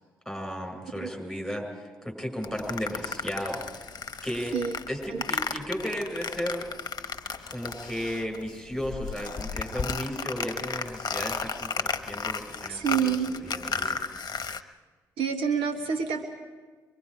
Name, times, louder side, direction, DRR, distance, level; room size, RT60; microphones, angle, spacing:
voice 1, 0.3-3.9 4.2-4.6 4.9-6.7 7.5-14.0, equal, ahead, 2 dB, 6.9 m, -34 dB
sound 1, 2.4-8.5 8.7-14.6, left 5 dB, 45° left, 1.1 m, -34 dB
voice 2, 12.7-13.4 13.7-13.9 15.2-16.2, right 7 dB, 70° right, 6 dB, 1.4 m, -28 dB
24.0 x 23.5 x 5.2 m, 1.4 s
hypercardioid pair, 45°, 10 cm